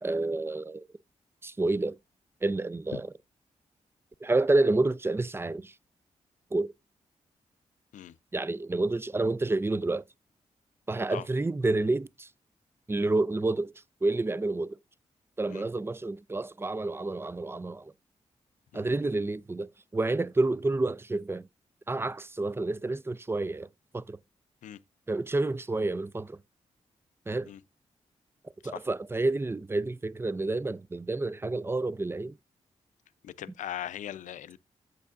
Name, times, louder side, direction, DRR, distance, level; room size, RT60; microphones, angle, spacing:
voice 1, 0.0-0.8 1.4-2.0 2.4-3.1 4.2-5.7 6.5-6.7 8.3-10.0 10.9-12.3 12.9-13.7 14.0-14.8 15.4-17.9 18.7-21.4 21.9-23.7 23.9-24.2 25.1-26.4 27.3-27.5 28.6-32.3, right 2 dB, 20° right, 0.4 m, -29 dB
voice 2, 33.2-34.6, left 11 dB, 85° left, 0.5 m, -39 dB
8.2 x 7.6 x 2.5 m
cardioid pair, 55°, 13 cm